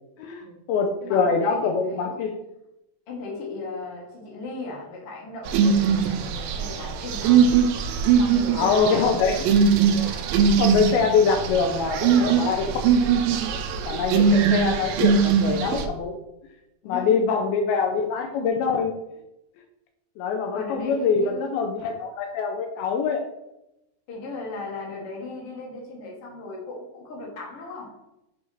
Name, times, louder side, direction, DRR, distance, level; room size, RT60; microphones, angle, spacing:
voice 1, 0.2-2.3 8.5-9.5 10.0-12.9 13.9-16.2 16.9-18.9 20.2-23.2, left 5 dB, 80° left, 4 dB, 2.4 m, -24 dB
voice 2, 1.0-2.2 3.1-7.6 8.2-9.0 16.8-17.2 20.5-21.5 24.1-27.9, left 2 dB, 50° left, -2 dB, 2.0 m, -37 dB
sound 1, 5.5-15.9, right 6 dB, 80° right, 2.1 m, -21 dB
8.2 x 4.8 x 2.8 m, 0.87 s
omnidirectional pair, 4.5 m